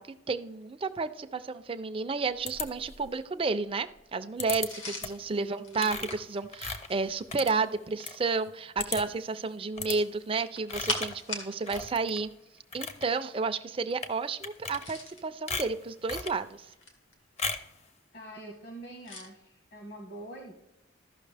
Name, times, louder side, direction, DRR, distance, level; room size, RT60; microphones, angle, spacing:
voice 1, 0.0-12.3 12.7-16.7, right 4 dB, 25° right, 10 dB, 0.4 m, -31 dB
sound 1, 2.5-3.2 4.4-4.7 5.0-5.3 5.8-8.2 8.5-8.6 8.8-9.2 9.8-10.0 10.7-11.2 11.7-12.2 12.6-13.1 13.9-14.1 14.4-15.1 15.5-16.4 17.4-17.7, left 4 dB, 35° left, 0.7 m, -37 dB
sound 2, 4.6-7.3 9.7-11.9 12.2-12.3 14.6-15.3 16.0-17.1 19.0-19.3, left 2 dB, 75° left, 1.5 m, -40 dB
voice 2, 5.4-6.1 18.1-20.5, right 2 dB, 55° left, 2 dB, 1.2 m, -45 dB
14.0 x 5.9 x 3.3 m, 0.88 s
head